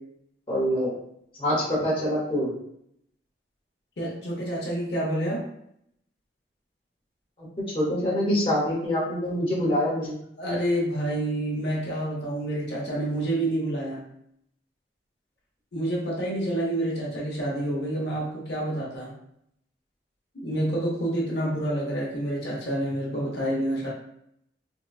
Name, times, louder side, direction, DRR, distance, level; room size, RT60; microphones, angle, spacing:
voice 1, 0.5-0.9 1.4-2.5 7.7-10.2, equal, 30° left, -6 dB, 0.9 m, -25 dB
voice 2, 4.0-5.4 10.4-14.0 15.7-19.1 20.3-23.9, right 1 dB, 70° left, -4 dB, 0.8 m, -28 dB
3.7 x 2.2 x 2.3 m, 0.73 s
head